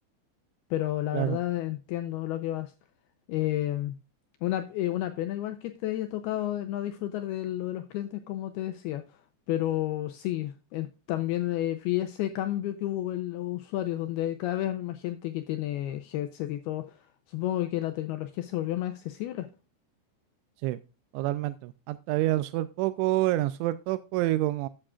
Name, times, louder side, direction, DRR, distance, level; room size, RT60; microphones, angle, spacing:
voice 1, 0.7-2.7 3.3-4.0 4.4-9.0 9.5-17.0 17.3-19.5, left 14 dB, 90° left, 7 dB, 2.2 m, -31 dB
voice 2, 21.1-24.7, right 16 dB, 90° right, 13 dB, 3.0 m, -27 dB
12.5 x 8.8 x 2.4 m, 0.31 s
omnidirectional pair, 5.3 m